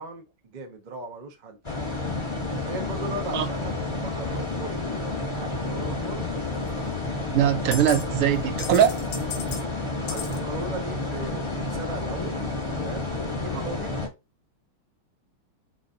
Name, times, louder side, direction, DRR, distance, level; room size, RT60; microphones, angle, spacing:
voice 1, 0.0-1.6 2.4-4.8 5.4-6.3 10.1-12.4 12.7-14.0, right 2 dB, 45° right, 0.5 m, -38 dB
sound 1, 1.6-14.1, left 2 dB, 20° left, 0.7 m, -30 dB
sound 2, 6.7-6.8 7.7-8.1 8.3-9.6 10.1-10.4, left 7 dB, 65° left, 1.0 m, -36 dB
voice 2, 7.3-9.0 13.5-13.6, right 10 dB, 85° right, 1.7 m, -21 dB
4.0 x 2.6 x 4.6 m
omnidirectional pair, 2.4 m